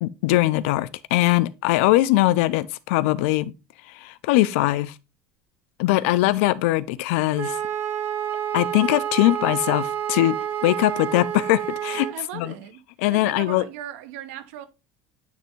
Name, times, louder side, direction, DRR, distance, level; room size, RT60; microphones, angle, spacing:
voice 1, 0.0-3.5 3.9-4.9 5.8-7.6 8.5-10.4 10.6-12.1 12.3-12.5 13.0-13.6, left 17 dB, 85° left, 0.4 m, -21 dB
Wind instrument woodwind instrument, 7.3-12.2, right 9 dB, 30° right, 0.7 m, -29 dB
voice 2, 12.1-12.8 13.1-14.7, right 11 dB, 85° right, 0.8 m, -38 dB
9.4 x 3.3 x 3.0 m
cardioid pair, 160°, 7 cm